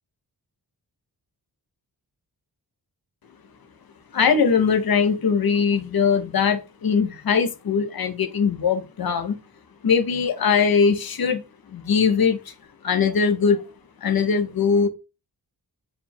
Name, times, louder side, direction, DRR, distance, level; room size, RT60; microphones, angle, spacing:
voice 1, 4.1-9.4 9.8-11.4 11.7-12.5 12.8-13.6 14.0-14.9, left 6 dB, 60° left, 0.7 m, -21 dB
4.2 x 3.7 x 2.2 m
wide cardioid pair, 115°, 40 cm